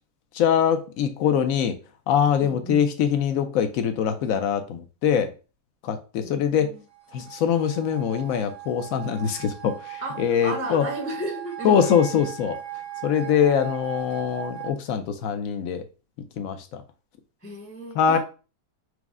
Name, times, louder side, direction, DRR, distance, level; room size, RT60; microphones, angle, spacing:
voice 1, 0.3-1.7 2.1-5.3 5.8-6.7 7.1-10.8 11.6-12.6 13.0-15.8 16.4-16.8 18.0-18.2, left 8 dB, 70° left, 0.8 m, -23 dB
voice 2, 2.4-2.8 6.2-6.8 10.0-12.0 17.4-18.2, right 1 dB, 15° left, 0.5 m, -34 dB
sound 1, 6.9-14.7, right 13 dB, 55° right, 0.9 m, -39 dB
4.7 x 2.1 x 3.5 m
omnidirectional pair, 1.8 m